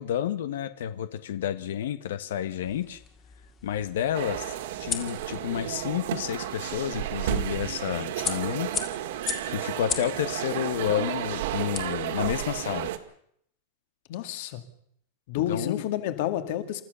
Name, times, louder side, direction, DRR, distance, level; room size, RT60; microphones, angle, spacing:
voice 1, 0.0-3.0 3.6-8.7 9.5-12.9 15.3-15.8, left 10 dB, 80° left, 12 dB, 1.3 m, -30 dB
sound 1, 2.7-12.6, left 7 dB, 20° left, 1.9 m, -39 dB
sound 2, 4.1-13.0, right 12 dB, 60° right, 2.0 m, -32 dB
voice 2, 14.1-14.6 15.3-16.8, left 12 dB, 50° left, 10 dB, 2.2 m, -30 dB
29.0 x 14.0 x 6.9 m, 0.70 s
supercardioid pair, 170°, 0 cm